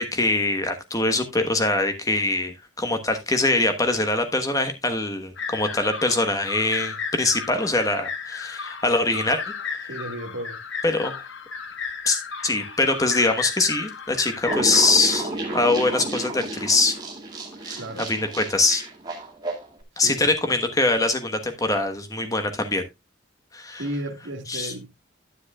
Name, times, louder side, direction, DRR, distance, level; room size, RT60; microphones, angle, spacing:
voice 1, 0.0-9.4 10.8-11.2 12.1-16.9 17.6-17.8 18.1-18.8 20.0-22.8 23.5-23.8 24.5-24.7, left 2 dB, 15° left, 1.2 m, -23 dB
sound 1, 5.4-14.6, left 6 dB, 70° left, 1.3 m, -34 dB
voice 2, 9.9-10.6 17.7-18.1 20.0-20.2 23.7-24.9, right 1 dB, 75° right, 1.7 m, -34 dB
sound 2, 14.5-19.7, right 2 dB, 20° right, 2.0 m, -31 dB
10.0 x 9.5 x 2.3 m
head